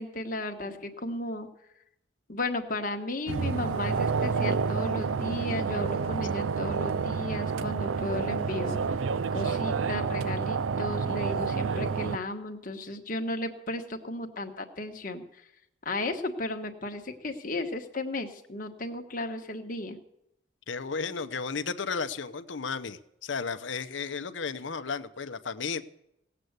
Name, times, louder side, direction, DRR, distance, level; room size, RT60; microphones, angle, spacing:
voice 1, 0.0-1.5 2.3-8.8 9.3-15.4 15.8-20.0, left 2 dB, 45° left, 4 dB, 1.3 m, -34 dB
sound 1, 3.3-12.2, right 5 dB, 85° right, 0.5 m, -29 dB
voice 2, 20.7-25.8, left 5 dB, 75° left, 12 dB, 0.8 m, -34 dB
18.0 x 7.8 x 8.0 m, 0.81 s
head